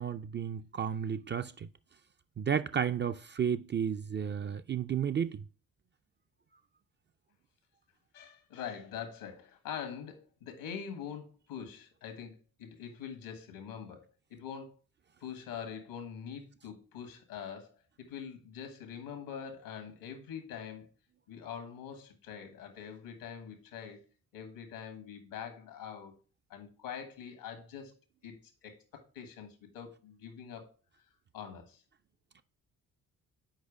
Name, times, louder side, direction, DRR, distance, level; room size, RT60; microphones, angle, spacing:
voice 1, 0.0-1.7 2.4-5.4, right 8 dB, 30° right, 0.4 m, -32 dB
voice 2, 8.1-12.3 12.6-14.7 15.2-20.9 21.3-24.0 24.3-26.1 26.5-27.9 28.2-28.3 28.6-30.6 31.3-31.8, left 7 dB, 80° left, 1.5 m, -44 dB
6.6 x 4.8 x 4.7 m
hypercardioid pair, 40°, 40 cm